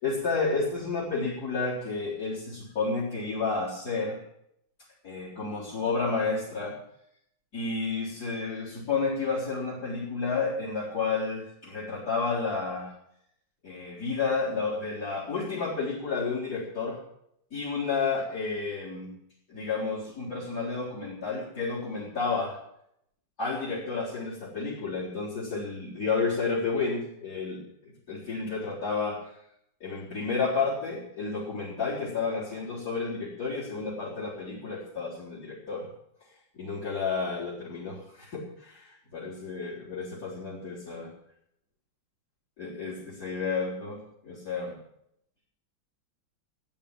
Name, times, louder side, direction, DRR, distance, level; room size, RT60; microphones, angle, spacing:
voice 1, 0.0-4.2 5.0-6.8 7.5-12.9 13.6-17.0 17.5-19.1 19.5-22.6 23.4-27.6 28.1-29.2 29.8-35.9 36.6-41.1 42.6-44.8, left 4 dB, 45° left, -5 dB, 4.4 m, -31 dB
14.0 x 9.3 x 8.8 m, 0.73 s
omnidirectional pair, 2.2 m